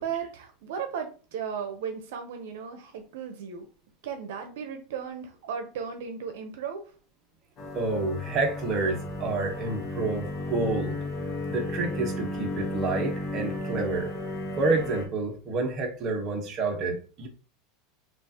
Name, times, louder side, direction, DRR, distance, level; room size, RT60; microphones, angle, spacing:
voice 1, 0.0-3.7 4.0-6.9, right 7 dB, 75° right, 6 dB, 0.7 m, -35 dB
sound 1, 7.6-15.1, left 1 dB, 35° left, 1.0 m, -34 dB
voice 2, 7.7-11.0 11.5-14.1 14.5-17.3, right 3 dB, 30° right, 1 dB, 1.1 m, -29 dB
6.2 x 2.5 x 2.8 m, 0.37 s
supercardioid pair, 150°, 0 cm